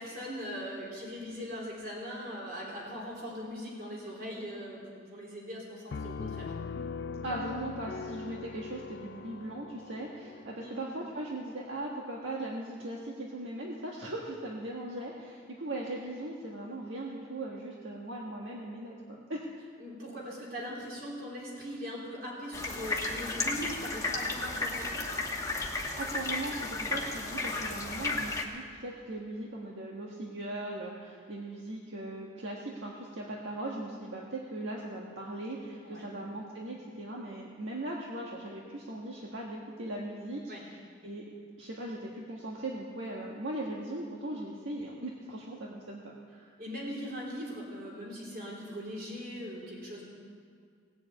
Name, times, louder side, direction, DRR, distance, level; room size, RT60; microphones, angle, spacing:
voice 1, 0.0-6.5 10.5-10.8 19.8-25.1 35.8-36.1 40.5-40.6 46.6-50.0, equal, 45° right, -4 dB, 3.7 m, -40 dB
Piano, 5.9-11.4, left 4 dB, 55° left, 0.4 m, -41 dB
voice 2, 7.2-19.4 25.7-41.2 41.6-46.0 46.3-46.6, right 1 dB, 70° right, -2 dB, 1.5 m, -39 dB
sound 1, 22.5-28.4, left 3 dB, 15° left, 1.1 m, -33 dB
18.0 x 7.7 x 8.5 m, 2.2 s
head